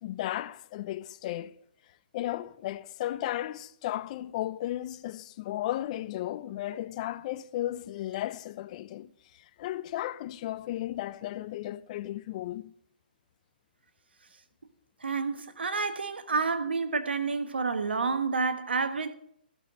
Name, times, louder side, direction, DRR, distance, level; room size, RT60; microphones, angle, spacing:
voice 1, 0.0-1.6 2.1-12.7, left 14 dB, 40° left, 0.7 m, -35 dB
voice 2, 15.0-19.1, right 4 dB, 90° right, 1.2 m, -29 dB
15.5 x 6.5 x 7.3 m
hypercardioid pair, 140°, 6 cm